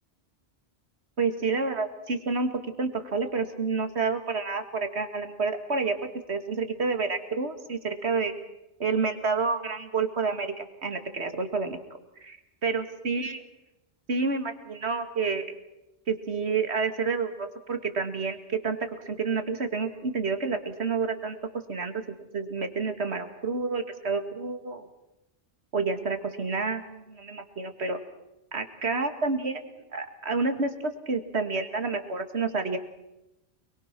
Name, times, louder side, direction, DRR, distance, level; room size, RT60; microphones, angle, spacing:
voice 1, 1.2-2.5 2.8-6.0 6.3-8.3 8.8-11.8 12.2-12.4 12.6-13.4 14.1-15.5 16.1-21.4 21.7-22.0 22.3-24.9 25.7-28.0 28.5-29.6 29.9-32.8, right 4 dB, 75° right, 7 dB, 2.4 m, -29 dB
29.0 x 21.5 x 6.1 m, 0.93 s
omnidirectional pair, 1.1 m